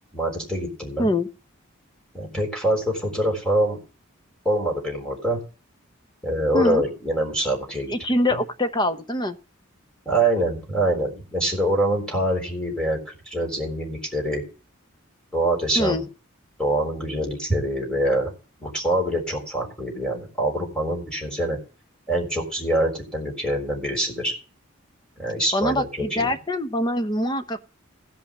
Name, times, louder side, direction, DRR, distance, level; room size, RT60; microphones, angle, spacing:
voice 1, 0.1-1.1 2.1-3.8 4.4-5.4 6.2-7.9 8.3-8.4 10.1-13.0 13.3-14.4 15.3-16.0 16.6-18.3 18.6-21.6 22.1-24.3 25.2-26.3, right 1 dB, 5° left, -1 dB, 3.9 m, -24 dB
voice 2, 7.9-9.4 15.8-16.1 25.5-27.6, left 1 dB, 20° left, 8 dB, 0.9 m, -24 dB
16.0 x 5.6 x 6.3 m, 0.36 s
head